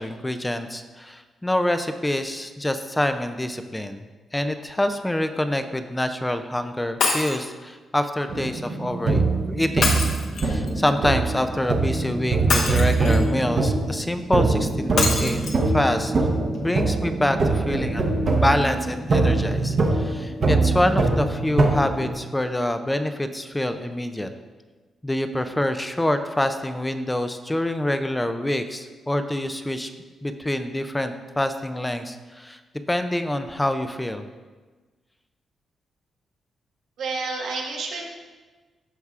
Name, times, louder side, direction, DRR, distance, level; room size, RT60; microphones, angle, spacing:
voice 1, 0.0-4.0 4.3-9.2 9.5-10.0 10.4-15.4 15.7-16.1 16.6-18.1 18.4-24.3 25.0-29.9 30.2-32.6 32.9-34.2, left 1 dB, 10° left, 8 dB, 0.3 m, -26 dB
Shatter, 7.0-7.5 9.8-10.7 12.5-13.3 15.0-15.6 16.2-16.3 16.6-16.7, left 3 dB, 70° left, 1.0 m, -25 dB
sound 1, 8.3-22.1, right 3 dB, 40° right, 0.8 m, -23 dB
voice 2, 37.0-38.0, right 3 dB, 90° right, -1 dB, 1.3 m, -29 dB
13.5 x 4.7 x 2.4 m, 1.3 s
wide cardioid pair, 155°, 0 cm